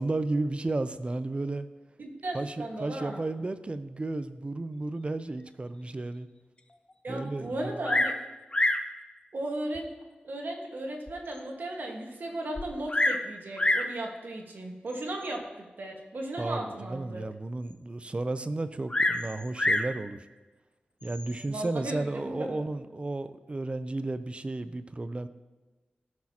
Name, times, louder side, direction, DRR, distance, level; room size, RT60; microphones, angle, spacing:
voice 1, 0.0-1.7 2.3-6.3 7.1-7.5 16.4-20.3 21.0-25.3, right 2 dB, 35° right, 12 dB, 0.5 m, -33 dB
voice 2, 2.0-3.2 7.0-8.1 9.3-9.9 10.2-17.2 21.5-22.6, right 1 dB, 70° right, 1 dB, 1.6 m, -36 dB
Bird vocalization bird call bird song, 7.8-8.2 8.5-8.9 9.8-9.9 10.5-10.6 11.1-11.2 11.4-11.5 12.6-13.3 13.6-13.9 14.9-15.3 18.9-19.9 21.0-21.5, left 1 dB, 30° left, 0.7 m, -27 dB
15.5 x 6.4 x 2.9 m, 1.2 s
wide cardioid pair, 65°, 3 cm